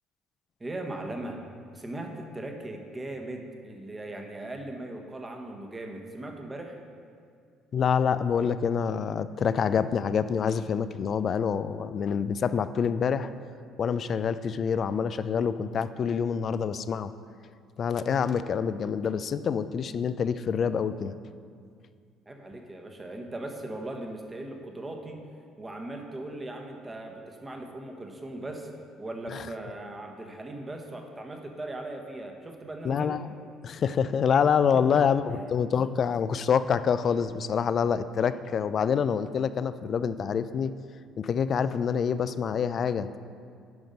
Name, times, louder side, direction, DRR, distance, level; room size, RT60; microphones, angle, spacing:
voice 1, 0.6-1.4 1.7-6.8 22.3-25.2 25.6-28.7 29.0-33.2 34.7-35.0, right 1 dB, 20° right, 3 dB, 1.2 m, -39 dB
voice 2, 7.7-13.3 13.8-17.1 17.8-21.2 29.3-29.5 32.8-33.3 33.6-40.7 41.2-43.2, left 7 dB, 50° left, 13 dB, 0.4 m, -26 dB
9.6 x 5.2 x 5.2 m, 2.2 s
supercardioid pair, 70°, 0 cm